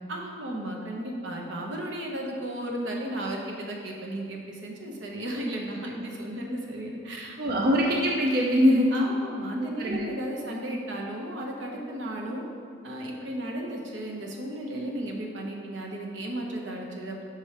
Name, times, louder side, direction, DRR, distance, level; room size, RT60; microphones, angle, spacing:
voice 1, 0.1-7.7 8.9-12.5 12.8-17.2, right 1 dB, 90° right, 0 dB, 0.9 m, -34 dB
voice 2, 7.4-8.9 9.6-10.1, equal, 55° right, -1 dB, 0.6 m, -23 dB
5.2 x 4.9 x 4.3 m, 2.4 s
head